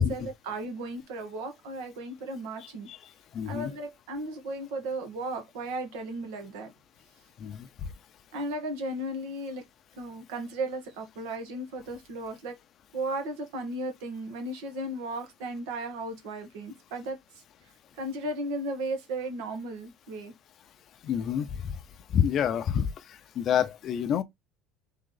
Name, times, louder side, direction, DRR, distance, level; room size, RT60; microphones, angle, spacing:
voice 1, 0.0-2.9 3.5-6.7 8.3-9.6 10.0-12.6 12.9-17.2 18.0-20.3, right 2 dB, 85° right, 1.8 m, -35 dB
voice 2, 2.6-3.0 3.3-3.7 7.4-7.9 21.0-21.8 22.1-24.2, left 8 dB, 35° left, 0.6 m, -28 dB
3.7 x 3.7 x 3.9 m
cardioid pair, 165°, 0 cm